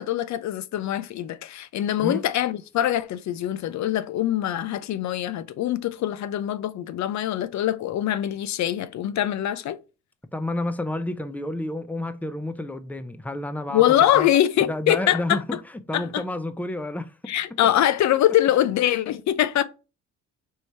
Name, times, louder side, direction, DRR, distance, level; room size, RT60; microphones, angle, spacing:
voice 1, 0.0-9.8 13.7-15.4 15.9-16.2 17.3-19.6, left 12 dB, 65° left, 0.6 m, -23 dB
voice 2, 10.3-13.8 14.1-14.3 14.7-15.6 15.9-17.3, left 1 dB, 5° left, 0.6 m, -30 dB
4.7 x 3.2 x 2.6 m
cardioid pair, 90°, 30 cm